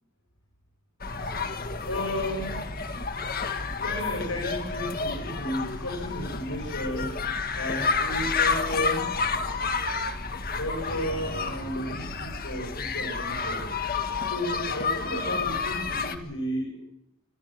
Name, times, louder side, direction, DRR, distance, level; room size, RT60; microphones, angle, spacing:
sound 1, 1.0-16.2, left 4 dB, 45° left, 1.8 m, -30 dB
voice 1, 1.9-2.7 3.8-7.2 7.5-9.1 10.5-13.7 14.2-16.8, equal, 80° left, 0 dB, 7.5 m, -33 dB
30.0 x 12.5 x 7.8 m, 0.87 s
head